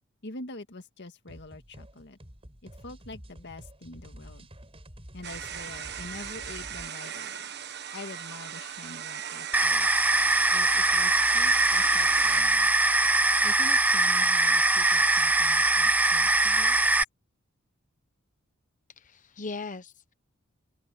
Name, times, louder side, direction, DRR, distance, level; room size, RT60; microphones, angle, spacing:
voice 1, 0.2-2.2 2.6-4.5 5.1-7.5 7.9-10.0 10.5-12.7 13.4-16.9, left 2 dB, 55° left, 1.8 m, -45 dB
sound 1, 1.3-6.9, equal, 30° right, 4.6 m, -48 dB
sound 2, 5.2-12.4, right 9 dB, 55° right, 1.3 m, -39 dB
sound 3, 9.5-17.0, right 2 dB, 10° right, 0.6 m, -22 dB
voice 2, 19.0-20.1, left 3 dB, 40° left, 1.0 m, -39 dB
open air
head